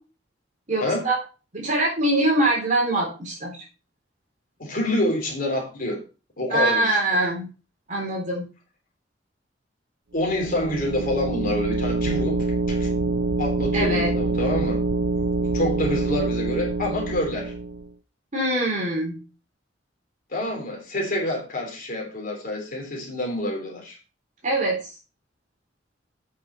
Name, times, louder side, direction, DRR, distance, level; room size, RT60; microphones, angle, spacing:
voice 1, 0.7-1.2 1.5-3.6 6.5-7.5 7.9-8.4 13.7-14.1 18.3-19.2 24.4-24.8, right 1 dB, 45° right, -2 dB, 3.8 m, -23 dB
voice 2, 4.6-6.0 6.4-7.2 10.1-12.9 13.4-14.8 15.5-17.5 20.3-24.0, left 1 dB, 50° left, 0 dB, 3.2 m, -27 dB
sound 1, 10.2-17.9, right 3 dB, 65° right, 0.5 m, -25 dB
8.5 x 5.9 x 5.5 m, 0.33 s
head